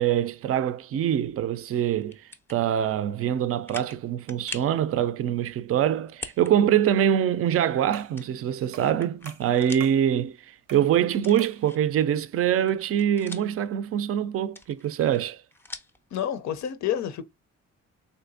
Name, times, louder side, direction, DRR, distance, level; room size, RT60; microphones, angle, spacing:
voice 1, 0.0-2.2 2.5-15.4, right 10 dB, 50° right, 0.4 m, -24 dB
sound 1, 2.0-2.6 3.1-3.2 3.7-4.0 4.3-4.8 6.1-6.5 6.9-7.0 8.2-9.9 10.3-10.4 11.2-12.0 12.4-13.7 14.4-16.0, left 2 dB, 10° left, 0.5 m, -42 dB
sound 2, 7.9-8.2 8.7-9.0 9.3-10.1 10.7-10.9 11.4-11.6, right 7 dB, 85° right, 0.7 m, -44 dB
voice 2, 16.1-17.2, left 10 dB, 65° left, 0.5 m, -29 dB
3.4 x 2.8 x 2.5 m
cardioid pair, 90°, 30 cm